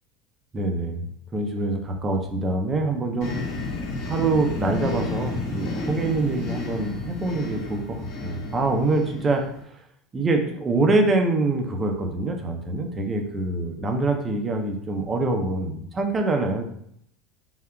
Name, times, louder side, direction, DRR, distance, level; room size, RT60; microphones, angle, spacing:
voice 1, 0.5-1.1 1.3-3.3 4.1-9.8 10.1-16.6, right 2 dB, 25° right, 4 dB, 0.5 m, -25 dB
sound 1, 3.2-9.6, left 3 dB, 70° left, 1.1 m, -32 dB
3.6 x 2.1 x 2.2 m, 0.69 s
supercardioid pair, 105°, 0 cm